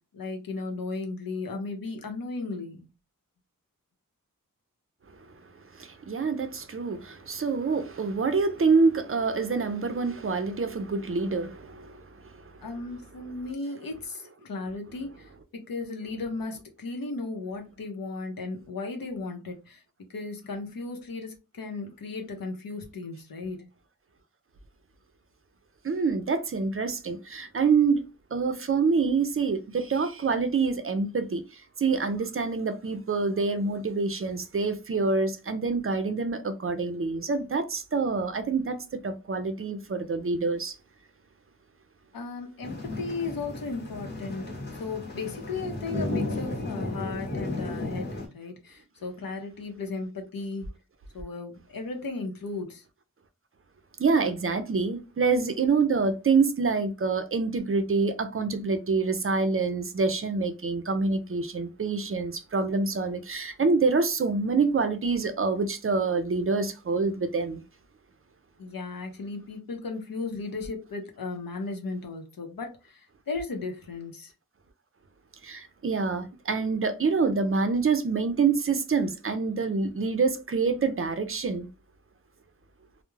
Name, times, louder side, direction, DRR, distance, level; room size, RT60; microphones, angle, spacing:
voice 1, 0.1-2.9 12.6-15.3 15.7-19.8 20.1-23.7 42.1-44.5 44.8-50.7 51.1-52.8 68.6-73.0 73.3-74.3, left 3 dB, 85° left, 0.7 m, -35 dB
voice 2, 5.7-12.4 25.8-28.0 28.3-40.8 54.0-67.6 75.4-81.7, right 4 dB, 40° right, 0.4 m, -26 dB
sound 1, 42.6-48.3, left 2 dB, 30° left, 0.9 m, -34 dB
2.3 x 2.0 x 3.0 m
wide cardioid pair, 60°, 34 cm